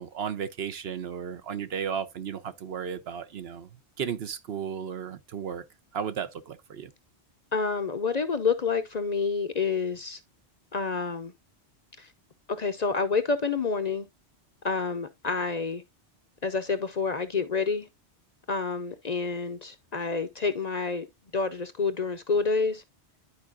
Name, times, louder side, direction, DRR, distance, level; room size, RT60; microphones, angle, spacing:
voice 1, 0.0-3.7 4.0-5.6 5.9-6.9, right 7 dB, 65° right, 0.9 m, -34 dB
voice 2, 7.5-10.2 10.7-11.3 12.0-12.1 12.5-14.1 14.6-15.8 16.4-17.9 18.5-21.1 21.3-22.8, left 4 dB, 45° left, 0.7 m, -28 dB
11.5 x 4.7 x 2.4 m
omnidirectional pair, 1.1 m